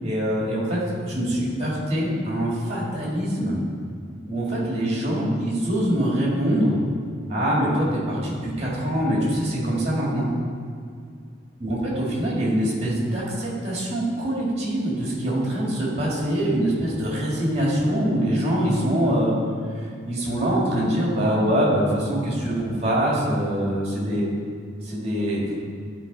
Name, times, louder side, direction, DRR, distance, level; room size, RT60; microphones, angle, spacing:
voice 1, 0.0-3.6 4.3-6.8 7.3-10.3 11.6-19.3 20.1-24.2 24.8-25.5, equal, 30° right, -5 dB, 2.0 m, -24 dB
10.0 x 4.6 x 4.0 m, 2.2 s
head